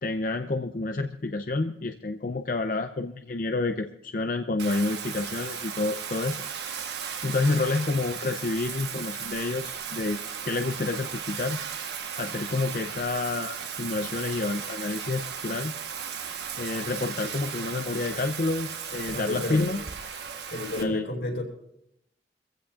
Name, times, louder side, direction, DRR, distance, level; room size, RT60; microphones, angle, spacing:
voice 1, 0.0-6.5 7.2-10.2 10.4-11.6 12.2-15.7 16.6-19.8 20.8-21.1, left 3 dB, 50° left, 6 dB, 0.5 m, -29 dB
Bathtub (filling or washing), 4.6-20.8, right 7 dB, 75° right, 1.2 m, -36 dB
voice 2, 19.1-19.6 20.5-21.4, left 2 dB, 75° left, -1 dB, 4.5 m, -31 dB
24.5 x 15.5 x 2.4 m, 0.78 s
head